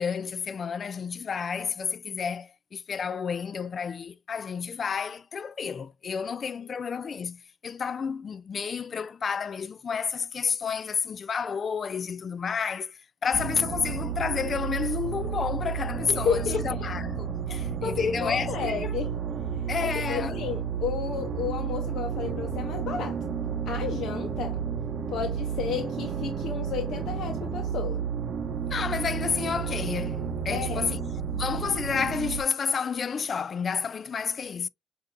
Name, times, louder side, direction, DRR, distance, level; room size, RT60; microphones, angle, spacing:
voice 1, 0.0-19.0 19.7-20.3 28.7-34.7, left 6 dB, 45° left, 0.4 m, -31 dB
sound 1, 13.3-32.4, right 7 dB, 55° right, 0.7 m, -32 dB
voice 2, 16.1-16.8 17.5-19.1 19.5-23.3 23.7-24.6 25.1-28.0 30.5-30.9, left 7 dB, 75° left, 0.8 m, -32 dB
6.4 x 2.6 x 2.5 m
cardioid pair, 90°, 0 cm